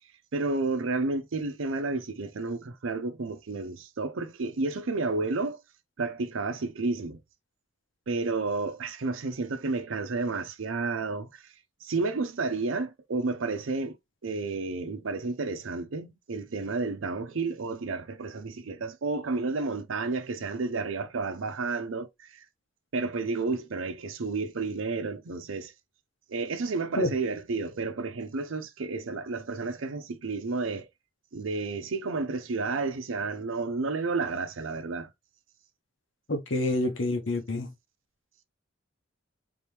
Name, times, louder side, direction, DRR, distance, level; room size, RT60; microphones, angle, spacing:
voice 1, 0.3-5.6 6.0-7.2 8.1-11.5 11.8-14.0 14.2-22.5 22.9-25.7 26.3-30.9 31.3-35.1, right 3 dB, 90° right, 0.6 m, -31 dB
voice 2, 36.3-37.7, left 1 dB, 75° left, 1.1 m, -27 dB
3.7 x 3.0 x 3.4 m
head